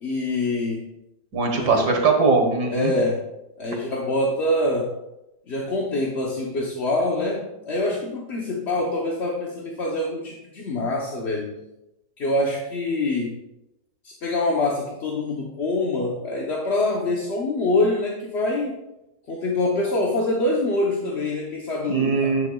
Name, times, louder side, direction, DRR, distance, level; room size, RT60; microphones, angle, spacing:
voice 1, 0.0-0.8 1.6-1.9 2.7-3.2 3.6-4.9 5.5-11.5 12.2-13.3 14.0-18.8 19.3-22.4, left 2 dB, 45° left, -1 dB, 1.0 m, -25 dB
voice 2, 1.3-2.9 21.9-22.5, right 4 dB, 65° right, 3 dB, 1.9 m, -20 dB
9.5 x 8.9 x 2.3 m, 0.91 s
omnidirectional pair, 1.9 m